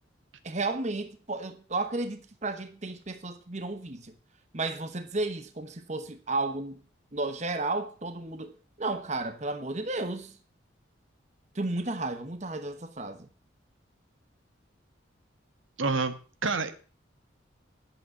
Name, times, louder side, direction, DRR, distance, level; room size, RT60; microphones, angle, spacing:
voice 1, 0.4-4.1 4.5-6.8 7.1-8.5 8.8-10.3 11.5-13.3, right 2 dB, 35° right, 1.0 m, -33 dB
voice 2, 15.8-16.1 16.4-16.7, right 4 dB, 85° right, 1.5 m, -27 dB
10.5 x 8.1 x 7.0 m
head